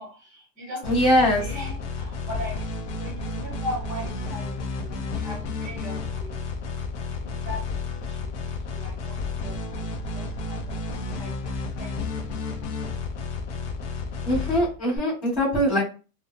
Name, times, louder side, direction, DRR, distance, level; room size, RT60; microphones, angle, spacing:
voice 1, 0.0-1.0 1.4-2.6 3.0-6.4 7.2-7.6 8.1-9.9 10.1-10.8 11.2-11.3 11.8-13.1, left 1 dB, 15° right, -3 dB, 0.9 m, -39 dB
sound 1, 0.8-15.0, left 3 dB, 55° left, 0.5 m, -32 dB
voice 2, 0.8-1.5 14.2-15.8, equal, 20° left, -10 dB, 1.1 m, -22 dB
2.6 x 2.1 x 2.3 m, 0.33 s
supercardioid pair, 180°, 47 cm